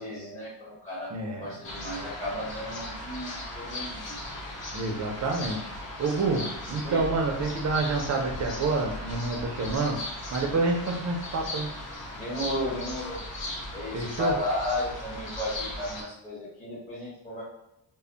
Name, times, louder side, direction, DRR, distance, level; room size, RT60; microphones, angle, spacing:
voice 1, 0.0-1.1 1.4-4.1 6.8-7.0 12.2-13.2 13.7-17.4, left 1 dB, 15° left, -8 dB, 1.0 m, -34 dB
voice 2, 1.1-1.5 4.7-5.7 6.0-10.0 10.3-11.7 13.9-14.3, right 3 dB, 40° right, 1 dB, 0.4 m, -28 dB
sound 1, 1.6-16.0, left 1 dB, 90° left, 0.8 m, -37 dB
2.1 x 2.0 x 3.7 m, 0.84 s
wide cardioid pair, 170°, 43 cm